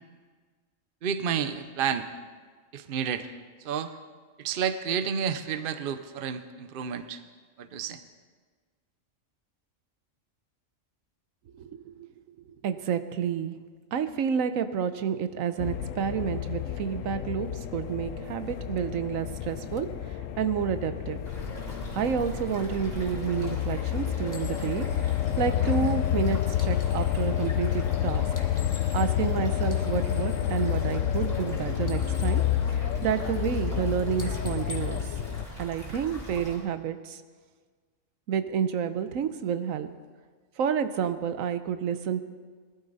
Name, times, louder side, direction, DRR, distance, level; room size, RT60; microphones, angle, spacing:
voice 1, 1.0-2.1 2.7-3.3 3.6-3.9 4.4-7.2 7.6-8.0, right 7 dB, 50° right, 11 dB, 0.8 m, -30 dB
voice 2, 11.5-12.1 12.6-13.5 13.9-19.9 20.4-21.2 21.9-25.1 25.4-28.2 28.9-32.4 32.7-35.0 35.6-37.2 38.3-39.9 40.6-42.2, right 8 dB, 80° right, 11 dB, 1.1 m, -29 dB
sound 1, 15.6-35.5, left 11 dB, 75° left, 1.0 m, -29 dB
sound 2, 21.2-36.6, equal, 15° right, 3.9 m, -41 dB
sound 3, 24.3-27.3 28.2-29.3 29.6-31.5 31.7-33.3 33.7-33.9 34.2-36.0, left 2 dB, 15° left, 1.2 m, -48 dB
19.5 x 12.0 x 4.0 m, 1.5 s
omnidirectional pair, 1.4 m